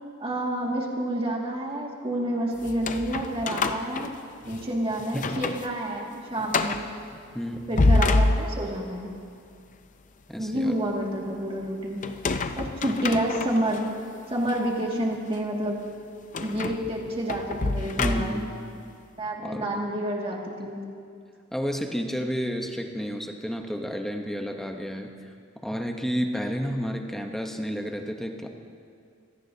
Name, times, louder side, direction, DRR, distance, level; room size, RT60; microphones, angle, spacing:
voice 1, 0.2-4.1 4.5-6.9 7.7-9.1 10.4-12.0 12.6-13.8 14.3-15.8 16.4-18.4 19.2-20.8, right 1 dB, 25° right, -2 dB, 2.1 m, -29 dB
sound 1, 2.6-4.7 5.1-5.7 6.0-6.1 6.5-6.9 7.5-8.9 12.0-13.8 14.4-14.6 16.3-18.6, left 2 dB, 35° left, 0.6 m, -27 dB
voice 2, 7.3-7.8 10.3-10.8 12.9-13.0 18.0-18.6 19.4-19.8 21.5-25.3 25.6-28.5, equal, ahead, 3 dB, 0.9 m, -31 dB
26.0 x 17.0 x 2.8 m, 2.3 s
head